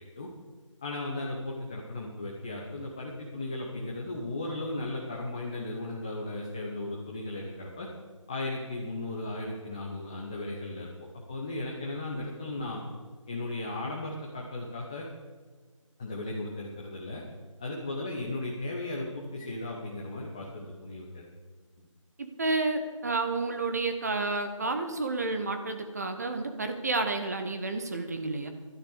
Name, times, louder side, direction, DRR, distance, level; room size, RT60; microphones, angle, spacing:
voice 1, 0.8-7.9 8.3-10.9 11.3-12.8 13.3-15.1 16.0-17.2 17.6-21.2 21.8-21.9, left 2 dB, 10° left, -3 dB, 0.7 m, -36 dB
voice 2, 22.2-28.5, right 3 dB, 30° right, 6 dB, 1.0 m, -30 dB
11.5 x 10.0 x 6.4 m, 1.4 s
figure-of-eight pair, 160°, 17 cm